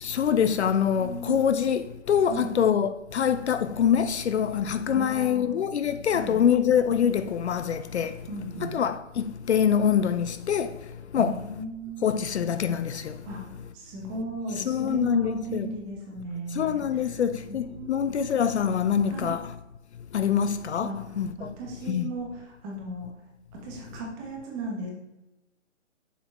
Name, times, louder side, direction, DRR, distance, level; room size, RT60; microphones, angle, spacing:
voice 1, 0.0-8.2 8.6-10.7 11.1-11.4 12.0-13.2 14.6-15.7 16.6-19.5 20.1-21.5 21.9-22.1, left 8 dB, 60° left, 0.5 m, -25 dB
voice 2, 0.9-1.4 2.2-2.5 4.9-5.5 6.0-6.4 8.3-8.8 11.1-12.1 13.2-13.4 13.7-17.1 17.5-18.2 19.1-19.3 20.8-21.0 21.4-23.1 23.5-24.9, right 2 dB, 15° right, 1.1 m, -36 dB
6.8 x 4.6 x 4.3 m
hypercardioid pair, 155°, 38 cm